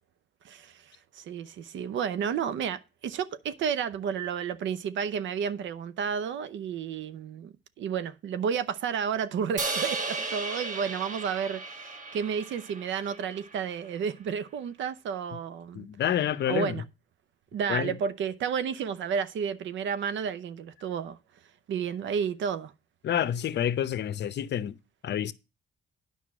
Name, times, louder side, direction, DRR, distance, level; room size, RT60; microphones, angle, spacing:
voice 1, 0.4-0.8 1.1-15.9 16.5-16.8 17.5-21.2 21.7-22.7, right 7 dB, 75° right, 0.8 m, -31 dB
Crash cymbal, 9.6-13.8, right 3 dB, 40° right, 1.4 m, -35 dB
voice 2, 15.7-16.8 17.7-17.9 23.0-24.8 25.0-25.3, left 10 dB, 60° left, 0.7 m, -28 dB
9.7 x 5.4 x 6.0 m
cardioid pair, 90°, 20 cm